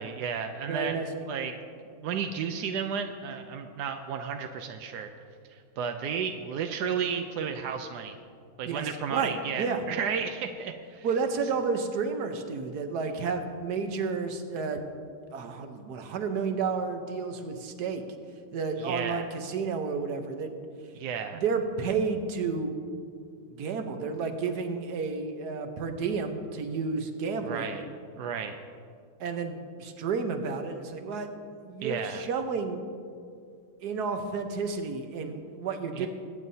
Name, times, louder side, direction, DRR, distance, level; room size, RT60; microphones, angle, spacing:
voice 1, 0.0-1.6 2.0-5.1 5.5-8.1 8.6-11.1 18.8-19.3 21.0-21.4 27.4-28.6 31.8-32.2 35.9-36.1, right 6 dB, 75° right, 5 dB, 0.9 m, -33 dB
voice 2, 0.7-1.2 8.7-9.8 11.0-14.9 15.3-18.0 18.5-20.5 21.3-22.8 23.5-27.7 29.2-31.3 31.6-32.8 33.8-36.1, right 5 dB, 60° right, 6 dB, 1.2 m, -31 dB
22.5 x 9.2 x 2.7 m, 2.3 s
omnidirectional pair, 2.3 m